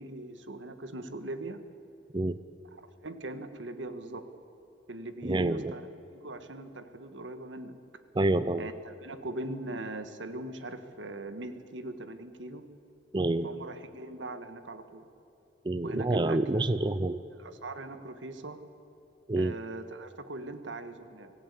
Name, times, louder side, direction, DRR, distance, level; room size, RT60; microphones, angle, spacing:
voice 1, 0.0-1.6 2.8-4.3 4.9-5.8 6.1-7.8 8.6-12.7 13.4-15.1 15.8-16.4 17.4-18.6 19.3-21.3, right 2 dB, 85° right, 9 dB, 1.6 m, -40 dB
voice 2, 5.2-5.7 8.1-8.7 13.1-13.5 15.6-17.2 19.3-19.5, right 2 dB, 25° right, 13 dB, 0.5 m, -27 dB
25.5 x 16.0 x 8.4 m, 3.0 s
head